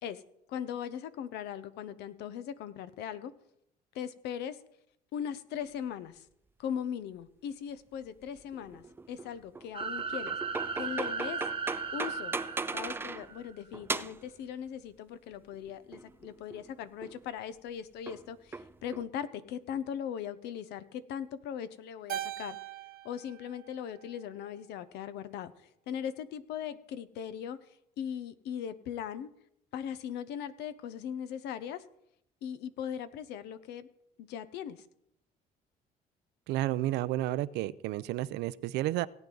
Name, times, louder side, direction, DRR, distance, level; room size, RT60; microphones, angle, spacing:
voice 1, 0.5-3.3 3.9-4.6 5.1-6.3 6.6-10.4 10.7-11.5 11.9-12.4 12.7-22.6 23.0-25.5 25.9-27.6 28.0-29.3 29.7-31.8 32.4-33.9 34.2-34.8, left 9 dB, 80° left, 14 dB, 0.8 m, -39 dB
sound 1, 8.3-13.3 13.7-14.3 15.5-16.7 17.0-17.2 18.1-19.1, right 3 dB, 15° right, 0.4 m, -38 dB
sound 2, 9.7-13.5, right 5 dB, 30° right, 1.0 m, -36 dB
Keyboard (musical), 22.1-24.6, right 12 dB, 60° right, 0.9 m, -42 dB
voice 2, 36.5-39.1, right 15 dB, 85° right, 17 dB, 0.5 m, -31 dB
17.5 x 9.2 x 3.9 m, 0.76 s
cardioid pair, 110°, 17 cm